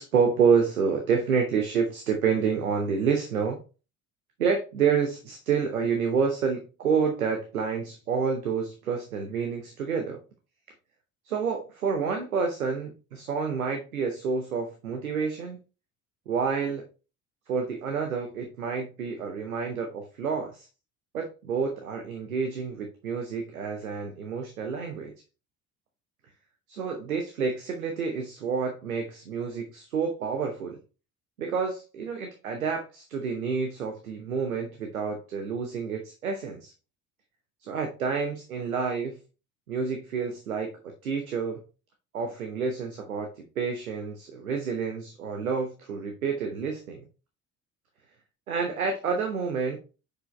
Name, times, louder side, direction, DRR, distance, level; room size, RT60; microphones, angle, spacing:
voice 1, 0.0-3.6 4.4-10.2 11.2-15.6 16.3-16.8 17.5-20.7 21.1-25.1 26.7-30.8 31.4-36.7 37.6-39.2 39.7-41.6 42.1-47.0 48.5-49.8, right 5 dB, 80° right, 4 dB, 1.0 m, -28 dB
6.6 x 4.9 x 3.2 m, 0.32 s
figure-of-eight pair, 55°, 42 cm